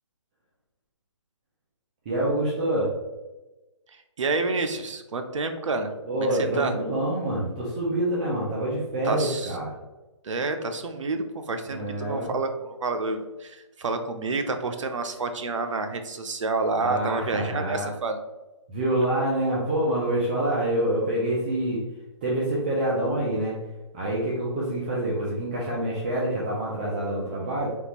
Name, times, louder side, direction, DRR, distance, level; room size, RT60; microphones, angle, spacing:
voice 1, 2.1-2.9 6.1-9.7 11.7-12.3 16.8-17.9 18.7-21.8 22.2-23.6 23.9-27.8, right 1 dB, 15° right, -6 dB, 0.3 m, -26 dB
voice 2, 4.2-5.9 6.3-6.7 9.0-9.6 10.2-18.2, right 3 dB, 85° right, 7 dB, 0.5 m, -29 dB
3.5 x 2.4 x 2.8 m, 1.1 s
hypercardioid pair, 160°, 16 cm